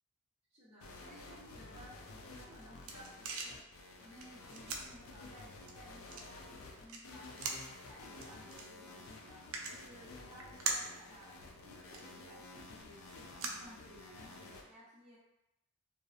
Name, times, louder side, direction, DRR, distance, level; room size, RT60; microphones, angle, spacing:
voice 1, 0.5-2.0 2.2-3.6 4.0-15.2, equal, 30° right, -12 dB, 0.6 m, -57 dB
sound 1, 0.8-14.6, left 2 dB, 80° left, 0.4 m, -52 dB
sound 2, 2.3-14.4, right 4 dB, 90° right, 0.4 m, -45 dB
2.7 x 2.0 x 2.3 m, 0.87 s
head